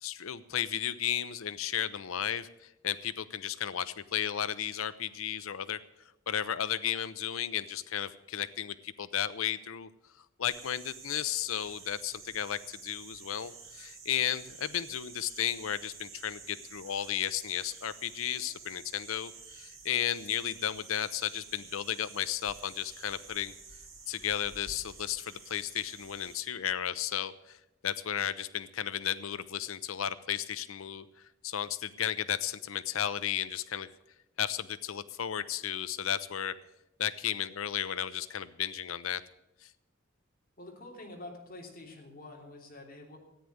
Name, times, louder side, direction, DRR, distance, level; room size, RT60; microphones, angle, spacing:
voice 1, 0.0-5.8 6.3-9.9 10.4-23.5 24.1-27.6 27.8-33.9 34.4-36.5 37.0-39.2 39.6-39.7, left 10 dB, 90° left, 15 dB, 0.6 m, -34 dB
sound 1, 10.4-26.4, right 5 dB, 50° right, 4.3 m, -50 dB
voice 2, 40.6-43.2, left 2 dB, 45° left, 0 dB, 3.2 m, -47 dB
14.0 x 9.4 x 7.8 m, 0.87 s
head